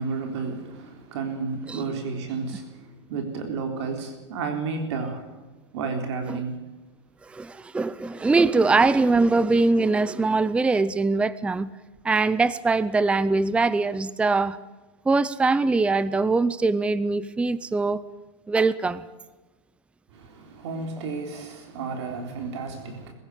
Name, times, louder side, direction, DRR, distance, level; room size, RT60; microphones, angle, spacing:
voice 1, 0.0-5.2 5.7-6.6 20.1-23.1, right 4 dB, 65° right, 3.7 m, -32 dB
voice 2, 7.3-11.7 12.0-14.6 15.1-18.0 18.5-19.0, right 3 dB, 5° right, 0.6 m, -22 dB
22.0 x 15.5 x 8.4 m
hypercardioid pair, 125°, 15 cm